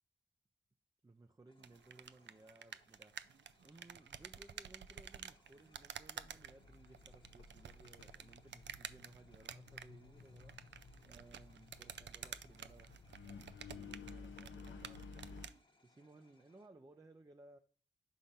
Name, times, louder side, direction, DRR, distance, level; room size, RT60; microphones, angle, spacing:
voice 1, 1.0-10.6 11.0-17.6, right 2 dB, 20° right, 0.5 m, -62 dB
sound 1, 1.5-16.7, left 2 dB, 25° left, 1.0 m, -73 dB
sound 2, 1.6-15.6, right 8 dB, 75° right, 0.4 m, -52 dB
Engine, 6.2-15.5, left 5 dB, 90° left, 0.7 m, -55 dB
5.6 x 4.3 x 5.1 m
cardioid pair, 70°, 19 cm